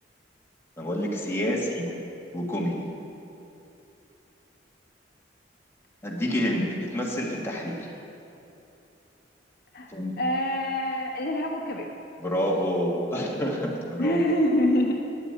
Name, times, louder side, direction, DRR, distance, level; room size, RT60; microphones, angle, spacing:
voice 1, 0.8-1.9 2.3-2.9 6.0-7.9 9.9-10.1 12.2-14.2, equal, 15° left, -3 dB, 1.6 m, -28 dB
voice 2, 10.2-11.9 14.0-14.9, left 1 dB, 60° left, 1 dB, 1.0 m, -25 dB
9.1 x 8.2 x 8.7 m, 2.9 s
head